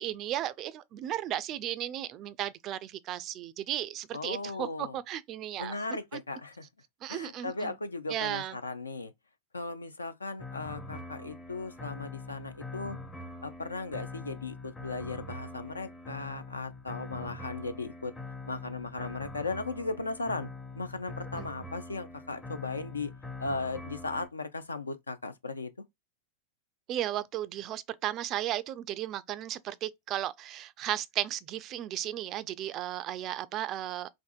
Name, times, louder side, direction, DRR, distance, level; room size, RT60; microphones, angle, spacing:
voice 1, 0.0-6.2 7.0-7.7 8.1-8.5 21.4-21.5 26.9-34.1, right 12 dB, 35° right, 0.3 m, -35 dB
voice 2, 4.1-5.0 5.6-6.7 7.1-9.1 9.5-13.0 13.4-18.1 18.5-20.5 20.7-23.1 23.4-25.8, left 3 dB, 75° left, 0.4 m, -37 dB
sound 1, 10.4-24.3, left 2 dB, 15° left, 0.6 m, -43 dB
3.5 x 2.5 x 2.4 m
figure-of-eight pair, 90°, 0 cm